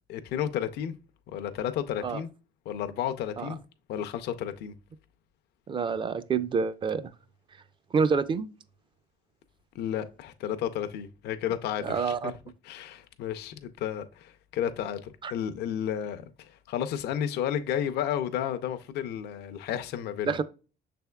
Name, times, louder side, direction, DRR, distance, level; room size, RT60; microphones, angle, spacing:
voice 1, 0.1-0.9 1.3-2.3 2.7-3.6 3.9-4.7 9.7-12.3 12.6-20.4, left 10 dB, 75° left, 0.5 m, -32 dB
voice 2, 5.7-7.1 7.9-8.5 11.8-12.3 15.2-15.3 20.3-20.4, right 5 dB, 30° right, 0.4 m, -27 dB
6.2 x 3.4 x 2.2 m
cardioid pair, 110°, 17 cm